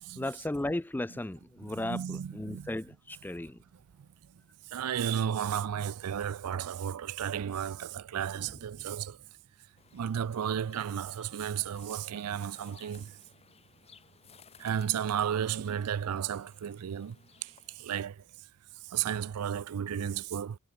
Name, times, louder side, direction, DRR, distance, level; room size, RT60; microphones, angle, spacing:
voice 1, 0.2-3.6, left 1 dB, 10° left, 0.3 m, -35 dB
voice 2, 1.6-2.8 4.7-9.2 9.9-13.1 14.6-17.2 17.4-17.5 17.8-18.2 18.9-20.6, right 9 dB, 85° right, 0.4 m, -33 dB
sound 1, 8.3-10.0, right 2 dB, 40° right, 0.7 m, -55 dB
sound 2, 9.8-18.1, left 6 dB, 25° left, 1.3 m, -59 dB
head